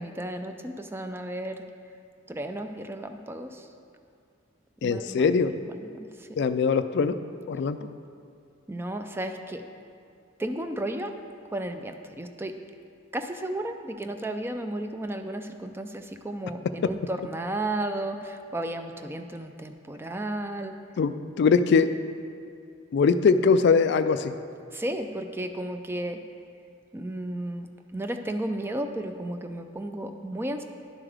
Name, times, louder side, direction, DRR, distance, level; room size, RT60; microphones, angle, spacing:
voice 1, 0.0-1.6 2.3-3.7 4.8-5.4 5.8-6.3 8.7-9.6 10.4-11.2 11.5-12.6 13.1-20.8 24.7-26.2 26.9-27.7 27.9-30.6, right 1 dB, 10° right, 7 dB, 0.4 m, -33 dB
voice 2, 4.8-5.5 6.4-7.2 7.5-7.9 21.0-21.9 22.9-24.3, left 5 dB, 60° left, 12 dB, 0.3 m, -22 dB
11.0 x 7.2 x 3.4 m, 2.3 s
head